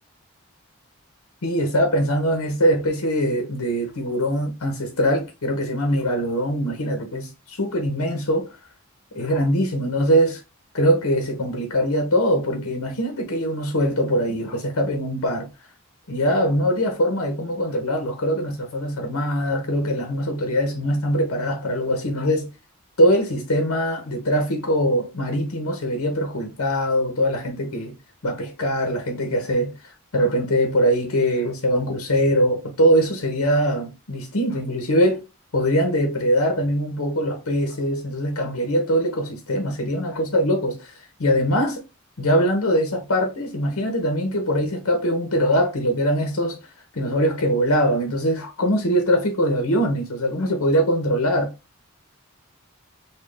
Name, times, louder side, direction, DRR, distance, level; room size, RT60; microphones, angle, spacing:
voice 1, 1.4-8.5 9.1-10.4 10.7-15.5 16.1-22.5 23.0-28.0 28.2-29.7 30.1-35.2 35.5-41.9 42.2-46.6 46.9-51.5, equal, 80° left, 0.9 m, -22 dB
4.2 x 2.3 x 3.3 m
head